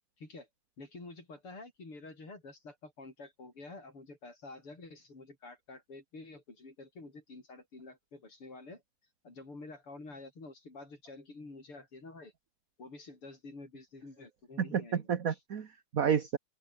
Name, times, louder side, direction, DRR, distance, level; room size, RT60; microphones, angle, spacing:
voice 1, 0.2-0.5 0.8-8.8 9.2-12.3 12.8-15.4, left 3 dB, 85° left, 8.0 m, -49 dB
voice 2, 14.6-16.4, right 7 dB, 45° right, 1.6 m, -31 dB
open air
omnidirectional pair, 2.4 m